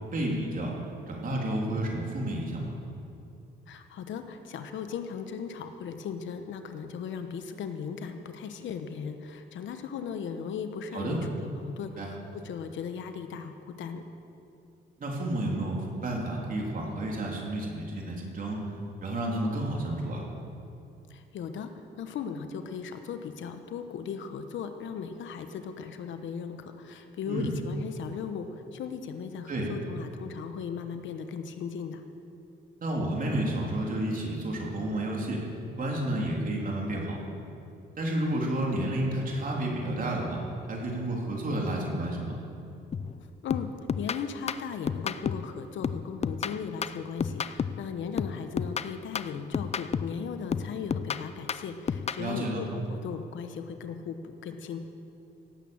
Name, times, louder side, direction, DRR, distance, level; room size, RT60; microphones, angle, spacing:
voice 1, 0.1-0.7 1.1-2.8 10.9-11.2 12.0-12.1 15.0-18.6 19.0-20.2 27.3-27.5 29.5-29.7 32.8-35.4 35.8-37.2 38.0-40.4 40.7-42.4 52.2-52.6, right 1 dB, 45° right, -2 dB, 3.5 m, -31 dB
voice 2, 3.7-14.0 21.1-21.7 22.0-32.0 43.4-43.7 44.0-54.8, left 6 dB, 70° left, 8 dB, 1.1 m, -37 dB
sound 1, 42.9-43.2 43.5-45.5 45.8-47.9 48.2-50.2 50.5-52.3, left 6 dB, 35° left, 0.5 m, -32 dB
17.5 x 8.5 x 7.2 m, 2.7 s
cardioid pair, 90°, 20 cm